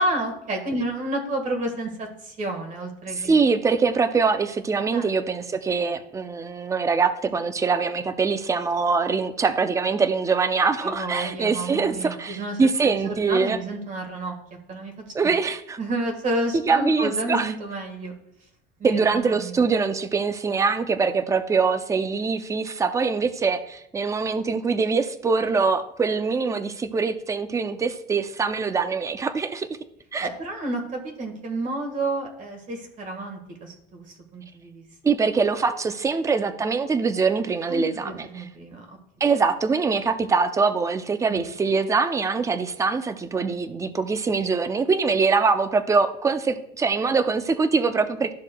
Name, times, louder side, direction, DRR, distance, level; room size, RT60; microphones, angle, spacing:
voice 1, 0.0-3.3 4.9-5.1 10.8-14.3 14.7-15.1 15.8-18.1 18.8-19.6 30.2-34.0 34.3-34.8 37.7-39.0 41.3-41.4, right 1 dB, 40° right, 3 dB, 1.6 m, -30 dB
voice 2, 3.2-13.6 15.1-15.8 16.7-17.5 18.8-29.8 30.1-30.3 35.0-38.4 39.2-48.3, right 4 dB, 15° right, 11 dB, 0.4 m, -23 dB
12.5 x 6.3 x 2.2 m, 0.78 s
cardioid pair, 145°, 20 cm